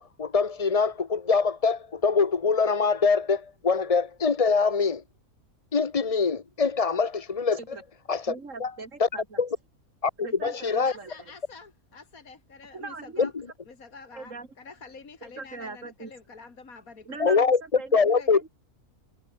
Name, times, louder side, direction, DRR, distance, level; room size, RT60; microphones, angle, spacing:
voice 1, 0.0-5.0 5.7-7.6 8.1-8.3 8.6-8.7 9.0-9.1 9.4-9.5 10.0-10.1 10.4-10.9 13.2-13.3 17.2-17.6 17.9-18.4, left 5 dB, 30° left, 0.7 m, -23 dB
voice 2, 7.5-7.8 8.3-9.4 10.2-11.3 12.7-13.2 14.1-14.5 15.2-16.1 17.0-18.5, right 3 dB, 55° right, 3.0 m, -41 dB
voice 3, 10.5-13.3 13.6-17.2 18.0-18.3, left 4 dB, 65° left, 3.0 m, -47 dB
omnidirectional pair, 1.6 m